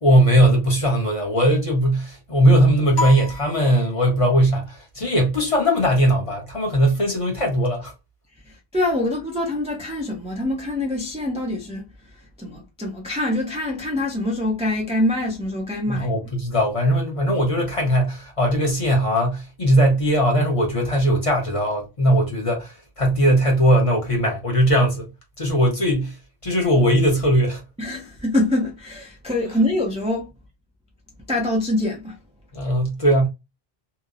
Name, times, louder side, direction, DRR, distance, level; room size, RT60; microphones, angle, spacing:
voice 1, 0.0-7.9 15.9-25.1 25.4-26.2 26.4-27.6 32.5-33.3, equal, 35° left, 0.8 m, -19 dB
sound 1, 2.9-4.4, left 3 dB, 85° left, 1.1 m, -30 dB
voice 2, 8.7-11.9 12.4-16.1 27.8-30.3 31.3-32.2, left 1 dB, 10° right, 0.4 m, -24 dB
2.8 x 2.0 x 2.3 m
omnidirectional pair, 1.1 m